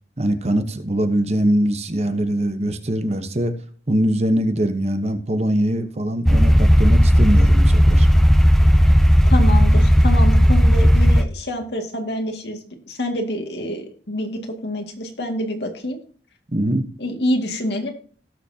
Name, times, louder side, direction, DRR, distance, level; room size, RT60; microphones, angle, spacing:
voice 1, 0.2-3.5 3.9-8.1 16.5-16.9, right 1 dB, 35° right, 9 dB, 1.0 m, -22 dB
sound 1, 6.3-11.2, equal, ahead, 0.7 m, -14 dB
voice 2, 9.3-12.6 12.9-16.0 17.0-17.9, left 1 dB, 75° left, 3 dB, 2.1 m, -26 dB
17.5 x 7.0 x 2.8 m, 0.43 s
head